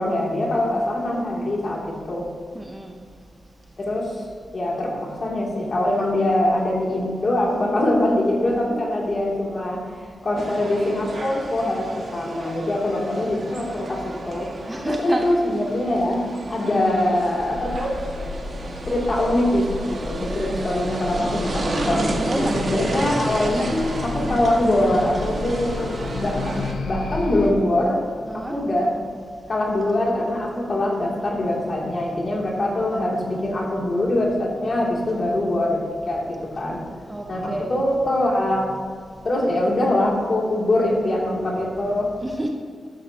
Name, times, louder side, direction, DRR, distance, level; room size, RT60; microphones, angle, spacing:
voice 1, 0.0-2.3 3.8-4.2 4.5-17.9 18.9-28.0 28.3-28.9 29.5-36.8 37.3-38.6 39.2-42.1, left 1 dB, 40° left, -3 dB, 2.8 m, -23 dB
voice 2, 2.5-3.0 14.7-15.2 16.6-17.0 22.3-23.0 28.3-28.6 37.1-37.8 42.2-42.5, right 1 dB, 15° right, 2 dB, 0.8 m, -29 dB
sound 1, 10.4-26.7, right 2 dB, 50° right, 1.7 m, -32 dB
sound 2, 17.4-27.5, left 3 dB, 75° left, 1.1 m, -33 dB
14.0 x 12.5 x 2.9 m, 2.1 s
wide cardioid pair, 155°, 0 cm